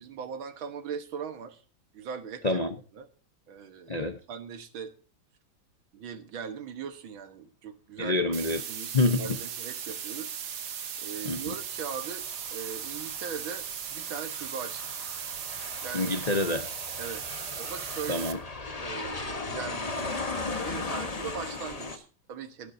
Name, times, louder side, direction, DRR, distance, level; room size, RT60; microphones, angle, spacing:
voice 1, 0.0-1.6 1.9-2.6 2.9-3.1 3.5-4.9 5.9-8.2 8.7-10.4 10.7-14.9 15.8-16.1 17.0-17.3 17.6-18.4 18.8-19.8 20.6-22.7, right 7 dB, 75° right, 2.1 m, -40 dB
voice 2, 2.4-2.7 3.9-4.2 8.0-8.6 8.9-9.3 11.2-11.5 15.9-16.7 18.1-18.4, left 2 dB, 60° left, 0.4 m, -27 dB
sound 1, 8.3-18.3, right 8 dB, 55° right, 1.4 m, -37 dB
Aircraft, 11.8-22.0, left 3 dB, 25° left, 0.9 m, -38 dB
18.5 x 10.5 x 2.7 m
omnidirectional pair, 2.2 m